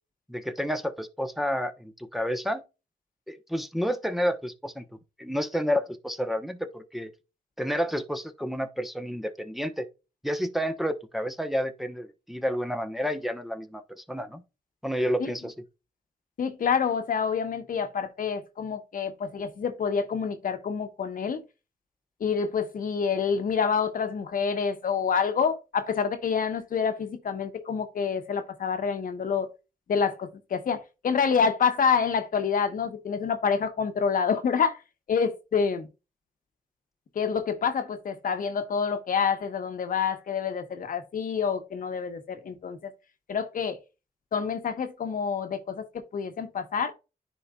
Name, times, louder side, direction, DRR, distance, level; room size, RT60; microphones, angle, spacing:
voice 1, 0.3-2.6 3.3-4.8 5.2-7.1 7.6-9.9 10.2-14.4 14.8-15.5, equal, ahead, 0.9 m, -30 dB
voice 2, 16.4-21.4 22.2-29.5 29.9-34.8 35.1-35.9 37.1-42.9 43.3-43.8 44.3-46.9, left 6 dB, 65° left, 1.1 m, -27 dB
10.5 x 4.2 x 2.3 m
cardioid pair, 75°, 15 cm